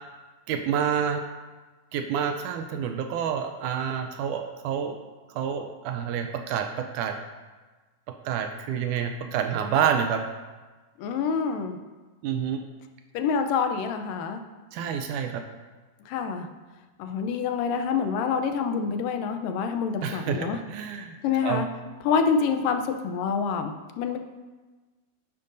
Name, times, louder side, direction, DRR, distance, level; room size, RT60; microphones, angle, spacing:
voice 1, 0.5-1.2 1.9-5.0 5.4-7.2 8.3-10.2 12.2-12.6 14.7-15.4 20.0-21.2 21.4-21.6, right 8 dB, 80° right, 5 dB, 1.9 m, -28 dB
voice 2, 11.0-11.8 13.1-14.4 16.1-16.5 17.0-20.6 21.2-21.7 22.0-24.2, left 6 dB, 85° left, 6 dB, 2.4 m, -26 dB
10.5 x 9.3 x 2.6 m, 1.3 s
omnidirectional pair, 3.8 m